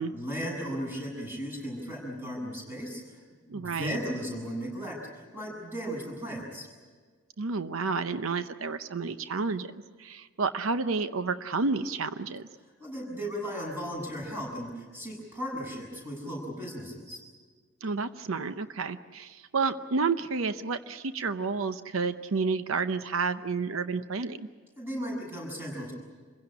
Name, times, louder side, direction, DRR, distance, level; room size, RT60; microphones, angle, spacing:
voice 1, 0.0-3.2 3.5-6.7 12.8-17.2 24.8-25.9, equal, 10° right, -1 dB, 7.3 m, -36 dB
voice 2, 3.5-4.0 7.4-9.7 10.0-12.5 17.8-24.5, right 4 dB, 85° right, 11 dB, 0.7 m, -30 dB
27.5 x 16.5 x 9.9 m, 1.5 s
head